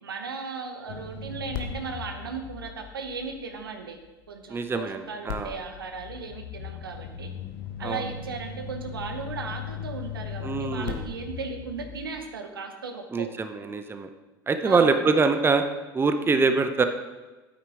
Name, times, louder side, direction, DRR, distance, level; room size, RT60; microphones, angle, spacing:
voice 1, 0.0-4.0 4.3-7.3 7.8-13.3 14.6-15.0 16.2-16.5, right 4 dB, 80° right, 6 dB, 0.9 m, -36 dB
sound 1, 0.9-4.1 5.3-12.2, left 7 dB, 65° left, 0.9 m, -38 dB
voice 2, 4.5-5.6 7.8-8.0 10.4-11.1 13.1-14.1 14.5-15.6 15.9-16.8, right 4 dB, 20° right, 8 dB, 0.7 m, -24 dB
9.0 x 8.8 x 3.5 m, 1.2 s
figure-of-eight pair, 70°, 12 cm